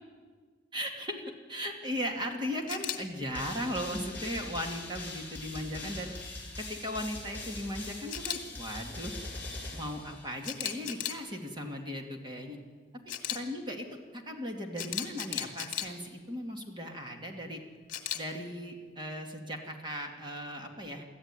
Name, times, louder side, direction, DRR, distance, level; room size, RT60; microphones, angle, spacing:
voice 1, 0.7-1.2 1.5-6.1 6.4-9.2 9.7-12.6 13.3-13.9 14.1-17.6 18.1-21.0, equal, 25° right, 2 dB, 2.4 m, -37 dB
Camera, 2.7-3.0 8.1-8.4 10.4-11.2 13.1-13.4 14.8-15.9 17.9-18.2, left 10 dB, 45° left, 2.0 m, -35 dB
sound 1, 3.3-10.6, left 2 dB, 10° left, 7.0 m, -42 dB
24.0 x 14.5 x 9.9 m, 1.5 s
head